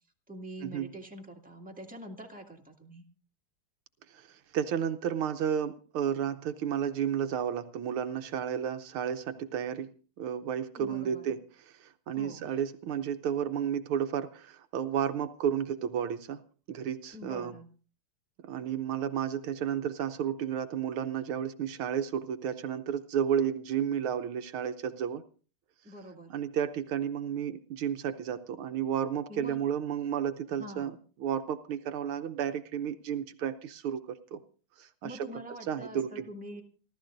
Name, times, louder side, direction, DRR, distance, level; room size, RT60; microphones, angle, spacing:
voice 1, 0.3-3.0 10.8-11.3 12.1-12.5 17.1-17.7 25.8-26.4 29.3-29.6 30.5-31.0 35.0-36.6, equal, 5° right, 0 dB, 2.0 m, -45 dB
voice 2, 4.1-9.9 10.2-11.4 11.7-16.4 16.7-17.5 18.4-25.2 26.3-30.9 31.2-34.4 34.8-35.3 35.7-36.3, right 8 dB, 80° right, 9 dB, 1.7 m, -32 dB
28.5 x 13.0 x 2.6 m, 0.39 s
omnidirectional pair, 2.4 m